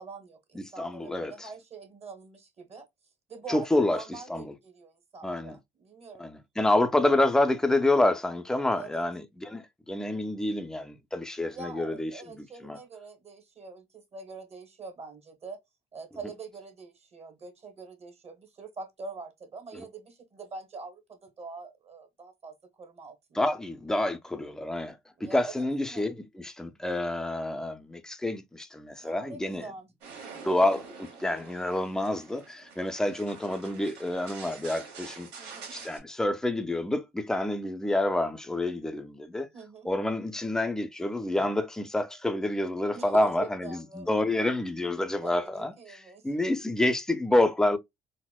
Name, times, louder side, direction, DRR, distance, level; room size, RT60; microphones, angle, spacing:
voice 1, 0.0-2.8 3.3-6.2 8.8-9.0 11.5-15.6 15.9-23.4 25.2-26.0 29.0-29.9 35.4-35.7 39.5-39.9 42.9-44.1 45.2-45.5 45.8-46.3, right 4 dB, 40° right, 0.9 m, -44 dB
voice 2, 0.5-1.5 3.5-4.5 5.2-5.6 6.2-12.8 19.7-19.8 23.3-29.7 30.4-39.5 39.8-47.8, left 1 dB, 5° left, 0.3 m, -28 dB
sound 1, 30.0-36.0, right 5 dB, 80° right, 1.1 m, -46 dB
4.1 x 2.0 x 2.2 m
cardioid pair, 110°, 17 cm